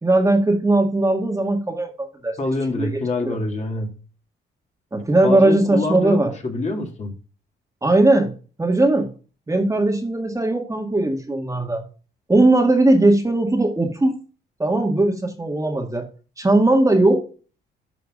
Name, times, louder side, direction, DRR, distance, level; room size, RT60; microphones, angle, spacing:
voice 1, 0.0-2.4 2.8-2.9 3.2-3.4 4.9-6.3 7.8-8.3 8.6-9.1 9.5-11.8 12.3-14.2 14.6-16.0 16.4-17.2, right 2 dB, 15° right, 3 dB, 1.8 m, -18 dB
voice 2, 2.4-3.9 5.2-7.1, left 2 dB, 35° left, 2 dB, 2.4 m, -26 dB
11.5 x 5.8 x 2.4 m, 0.36 s
cardioid pair, 90°, 20 cm